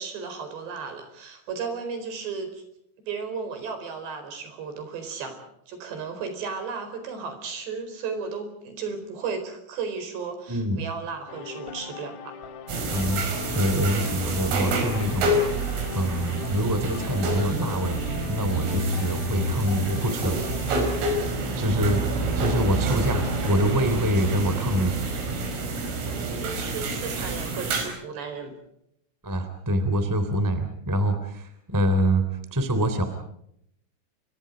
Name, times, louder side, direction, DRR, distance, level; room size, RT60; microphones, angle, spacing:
voice 1, 0.0-2.6 3.0-5.4 5.7-12.3 21.3-21.9 26.0-28.5, right 5 dB, 60° right, 8 dB, 6.3 m, -34 dB
voice 2, 10.5-10.8 12.9-13.2 13.5-15.7 15.9-18.0 18.3-20.4 21.6-25.0 29.2-32.2 32.5-33.0, right 1 dB, 5° right, 9 dB, 1.9 m, -25 dB
sound 1, 11.3-21.0, left 5 dB, 90° left, 4.8 m, -39 dB
sound 2, 12.7-27.9, right 2 dB, 85° right, 7.6 m, -28 dB
sound 3, 21.4-26.7, left 1 dB, 40° left, 9.2 m, -46 dB
30.0 x 24.5 x 5.2 m, 0.74 s
omnidirectional pair, 5.8 m